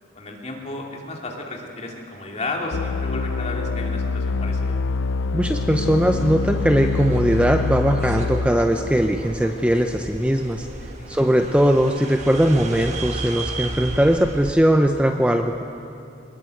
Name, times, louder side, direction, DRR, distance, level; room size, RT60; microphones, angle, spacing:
voice 1, 0.1-4.8 11.0-11.3, left 2 dB, 35° left, 0 dB, 2.8 m, -33 dB
sound 1, 2.7-10.2, left 4 dB, 80° left, 0.5 m, -26 dB
voice 2, 5.3-10.7 11.1-15.6, equal, 5° right, 5 dB, 0.6 m, -20 dB
sound 2, 5.5-14.5, right 2 dB, 35° right, 1.5 m, -35 dB
22.5 x 20.0 x 7.9 m, 2.7 s
head